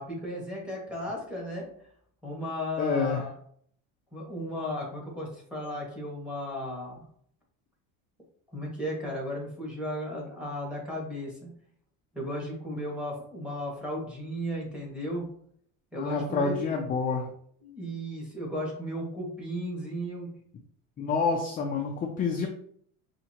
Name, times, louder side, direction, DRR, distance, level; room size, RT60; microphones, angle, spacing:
voice 1, 0.0-1.7 2.2-3.4 4.1-7.0 8.5-11.4 12.1-15.3 15.9-16.7 17.6-20.3, equal, 5° right, -2 dB, 1.8 m, -35 dB
voice 2, 2.8-3.2 16.0-17.2 21.0-22.5, left 4 dB, 25° left, 2 dB, 0.5 m, -28 dB
5.4 x 2.8 x 2.9 m, 0.63 s
cardioid pair, 130°, 36 cm